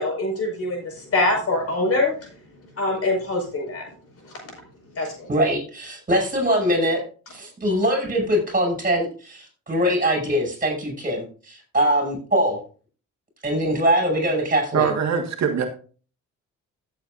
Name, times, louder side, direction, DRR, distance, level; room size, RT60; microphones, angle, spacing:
voice 1, 0.0-2.3 2.7-3.9 4.2-4.3 4.9-5.3, left 2 dB, 50° left, 1 dB, 5.1 m, -24 dB
voice 2, 5.3-7.0 7.3-12.6 13.4-15.0, equal, 30° right, 2 dB, 6.1 m, -22 dB
voice 3, 14.7-15.6, right 7 dB, 60° right, 3 dB, 1.6 m, -22 dB
15.0 x 7.7 x 2.6 m, 0.39 s
cardioid pair, 90°, 30 cm